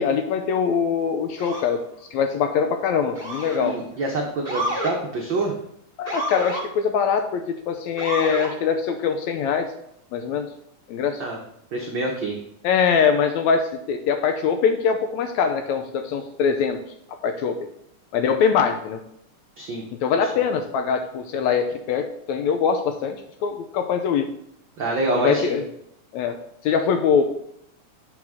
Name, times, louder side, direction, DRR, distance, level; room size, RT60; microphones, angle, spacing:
voice 1, 0.0-1.8 2.1-3.8 6.0-9.7 10.1-10.5 10.9-11.2 12.6-16.8 17.2-17.6 18.1-19.0 19.9-24.3 25.1-25.6 26.1-26.4 26.6-27.3, left 6 dB, 75° left, 6 dB, 1.8 m, -23 dB
Motor vehicle (road) / Siren, 1.4-1.7 3.1-3.7 4.4-4.9 6.0-6.6 8.0-8.5, right 1 dB, 5° left, 2.6 m, -29 dB
voice 2, 3.6-5.5 11.2-11.4 11.7-12.3 19.6-19.8 24.8-25.5, right 2 dB, 85° right, -1 dB, 1.0 m, -26 dB
9.0 x 6.4 x 3.6 m, 0.73 s
omnidirectional pair, 3.7 m